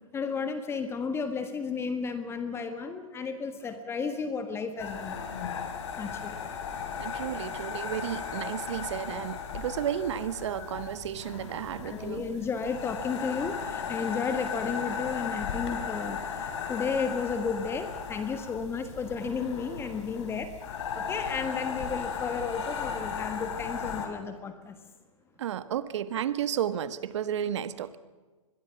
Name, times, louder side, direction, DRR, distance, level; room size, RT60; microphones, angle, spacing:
voice 1, 0.1-5.2 6.0-6.4 11.8-20.5 20.9-24.7, left 5 dB, 15° left, 9 dB, 1.4 m, -33 dB
sound 1, 4.8-24.1, left 6 dB, 60° left, 4.8 m, -36 dB
voice 2, 7.0-12.3 25.4-28.0, right 10 dB, 60° right, 13 dB, 1.5 m, -32 dB
25.0 x 22.0 x 5.9 m, 1.3 s
hypercardioid pair, 130°, 17 cm